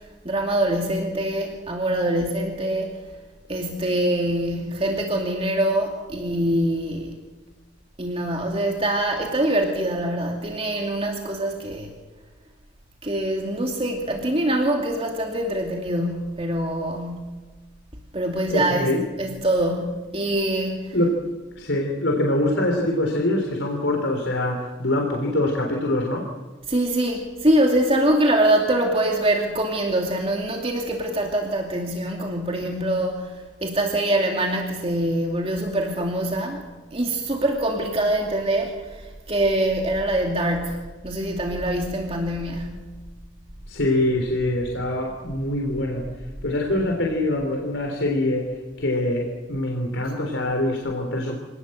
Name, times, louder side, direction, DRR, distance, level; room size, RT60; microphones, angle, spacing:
voice 1, 0.2-2.9 3.5-7.2 8.0-11.9 13.0-17.5 18.1-18.9 19.2-21.1 26.7-42.9, right 1 dB, 30° right, 1 dB, 2.5 m, -24 dB
voice 2, 18.5-19.0 20.9-21.2 21.6-26.3 43.7-46.1 46.4-51.4, left 1 dB, 85° left, 1 dB, 3.6 m, -24 dB
27.0 x 19.0 x 7.9 m, 1.3 s
head